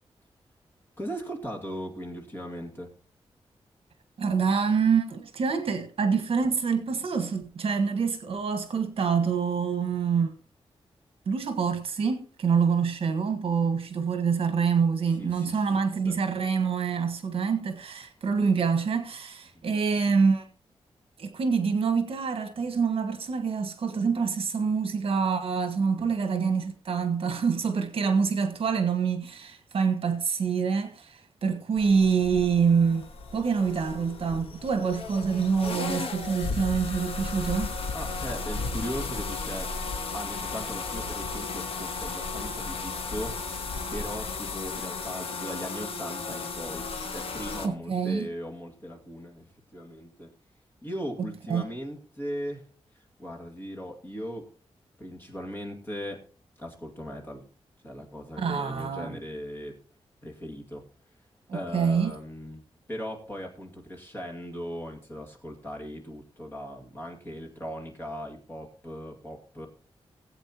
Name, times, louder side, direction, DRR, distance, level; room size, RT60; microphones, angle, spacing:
voice 1, 1.0-2.9 15.2-15.8 16.0-16.2 26.0-26.1 37.9-39.7 40.1-50.3 50.8-52.7 52.9-54.5 55.0-56.2 56.6-57.4 57.8-59.8 60.2-60.9 61.5-62.6 62.9-69.7, equal, 20° left, 2.2 m, -38 dB
voice 2, 4.2-10.3 11.3-20.5 21.2-33.0 33.3-37.7 47.6-48.3 51.2-51.6 58.4-59.1 61.5-62.1, right 5 dB, 60° right, 1.5 m, -26 dB
sound 1, 31.8-47.7, left 4 dB, 65° left, 1.2 m, -34 dB
18.5 x 8.2 x 2.9 m
wide cardioid pair, 175°, 11 cm